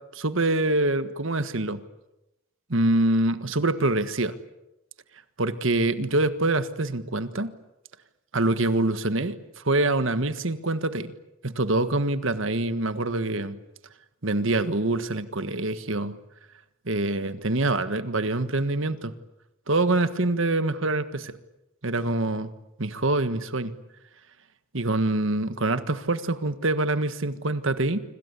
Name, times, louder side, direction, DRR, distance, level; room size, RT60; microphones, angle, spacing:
voice 1, 0.1-1.8 2.7-4.3 5.4-7.5 8.3-11.1 11.4-13.6 14.2-16.2 16.8-19.1 19.7-21.4 21.8-22.5 22.8-23.7 24.7-28.0, right 2 dB, 65° right, 11 dB, 1.6 m, -25 dB
26.5 x 26.0 x 8.4 m, 0.91 s
head